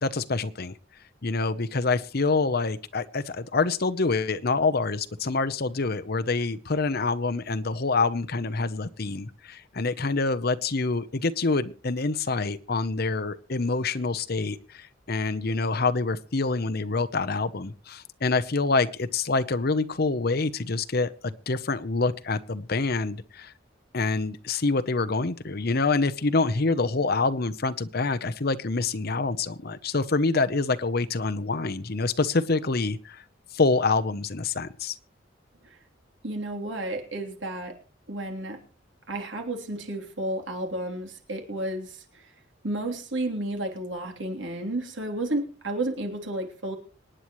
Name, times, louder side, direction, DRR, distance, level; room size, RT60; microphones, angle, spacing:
voice 1, 0.0-0.7 1.2-23.5 23.9-33.2 33.5-35.0, left 3 dB, 55° left, 12 dB, 0.9 m, -26 dB
voice 2, 36.2-37.8 38.1-38.6 39.1-42.3 42.6-46.8, right 1 dB, 75° right, 2 dB, 3.4 m, -32 dB
26.0 x 10.0 x 3.2 m, 0.35 s
head